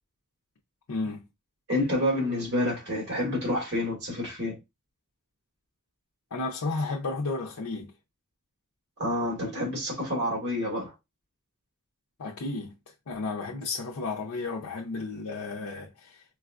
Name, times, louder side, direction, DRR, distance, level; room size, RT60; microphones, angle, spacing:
voice 1, 0.9-1.3 6.3-7.9 12.2-12.7 13.1-16.2, left 3 dB, 80° left, 0.6 m, -33 dB
voice 2, 1.7-4.6 9.0-10.9, left 1 dB, 50° right, 1.8 m, -28 dB
4.5 x 2.3 x 2.4 m
head